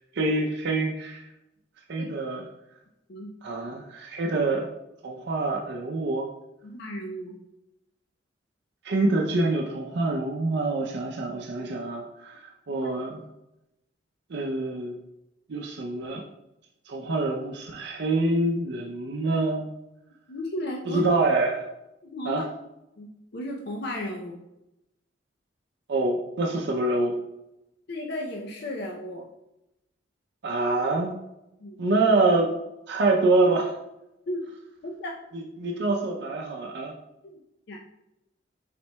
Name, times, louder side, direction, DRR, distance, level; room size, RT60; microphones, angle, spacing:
voice 1, 0.1-1.3 1.9-2.5 3.4-4.7 5.0-6.3 8.8-13.2 14.3-15.0 15.5-16.2 16.9-19.7 20.9-21.7 22.3-22.4 25.9-27.1 30.4-31.1 31.8-32.5 32.9-33.7 35.3-36.9, right 2 dB, 65° right, 0 dB, 0.5 m, -26 dB
voice 2, 6.6-7.4 12.7-12.9 20.3-21.0 22.0-22.5 23.0-24.4 27.9-29.3 31.6-31.8 34.3-34.4 34.8-35.2 37.2-37.4 37.7-37.8, left 1 dB, 65° left, 0 dB, 0.5 m, -34 dB
5.6 x 4.3 x 2.2 m, 0.90 s
head